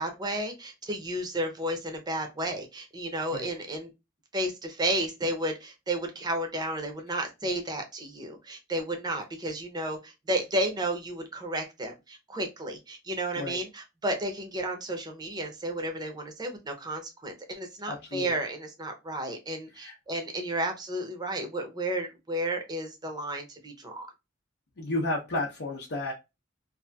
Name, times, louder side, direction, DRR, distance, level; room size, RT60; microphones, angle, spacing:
voice 1, 0.0-3.9 4.3-24.1, right 1 dB, 20° right, 4 dB, 0.6 m, -32 dB
voice 2, 17.9-18.3 19.8-19.9 24.8-26.1, left 2 dB, 55° left, -2 dB, 0.7 m, -32 dB
2.7 x 2.5 x 2.2 m, 0.24 s
head